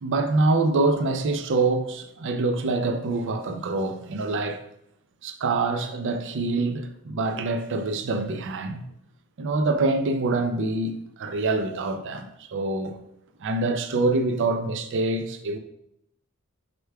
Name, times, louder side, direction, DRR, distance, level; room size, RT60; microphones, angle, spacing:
voice 1, 0.0-4.6 5.2-8.8 9.4-13.0 13.4-15.6, right 3 dB, 55° right, 0.4 m, -25 dB
4.9 x 4.5 x 2.2 m
head